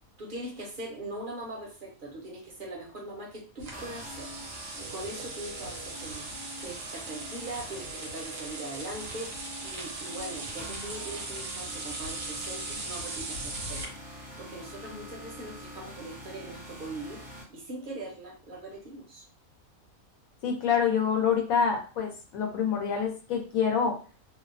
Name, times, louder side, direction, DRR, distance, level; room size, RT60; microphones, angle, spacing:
voice 1, 0.2-4.3 4.8-6.2 6.6-13.9 14.4-17.2 17.5-19.2, right 1 dB, 50° right, -1 dB, 0.7 m, -41 dB
sound 1, 3.6-13.9, right 3 dB, 75° right, 1.1 m, -39 dB
sound 2, 3.7-17.4, equal, 10° right, 0.4 m, -45 dB
voice 2, 20.4-24.0, left 7 dB, 80° left, 3 dB, 1.1 m, -26 dB
2.7 x 2.0 x 2.5 m, 0.36 s
omnidirectional pair, 1.4 m